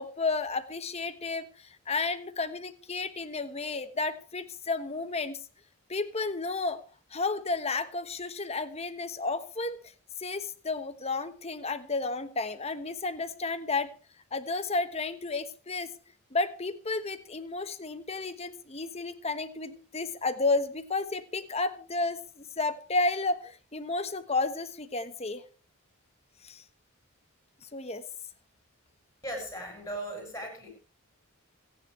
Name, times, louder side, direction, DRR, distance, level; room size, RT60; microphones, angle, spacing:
voice 1, 0.0-5.4 5.9-6.8 7.1-9.8 10.2-13.9 14.3-15.9 16.3-25.4 26.4-26.6 27.7-28.0, left 3 dB, 30° left, 10 dB, 1.2 m, -32 dB
voice 2, 29.2-30.7, right 1 dB, 15° left, 2 dB, 7.6 m, -37 dB
27.5 x 9.9 x 3.3 m, 0.36 s
head